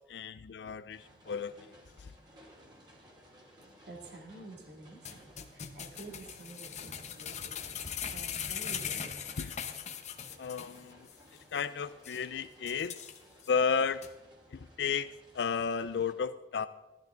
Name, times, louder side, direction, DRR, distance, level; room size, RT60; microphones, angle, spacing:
voice 1, 0.0-1.7 2.0-2.1 9.4-9.5 10.4-11.1 11.5-13.0 13.5-14.0 14.5-16.7, left 6 dB, 70° left, 12 dB, 0.4 m, -33 dB
sound 1, 0.9-16.1, equal, 25° right, 2.9 m, -59 dB
voice 2, 3.6-9.3, right 2 dB, 65° right, 1 dB, 2.7 m, -50 dB
sound 2, 5.1-10.8 11.1-11.2 11.6-11.7 12.0-12.2 12.7-13.5 14.0-14.1, left 8 dB, 40° left, 1.0 m, -40 dB
15.0 x 13.5 x 3.8 m, 1.1 s
head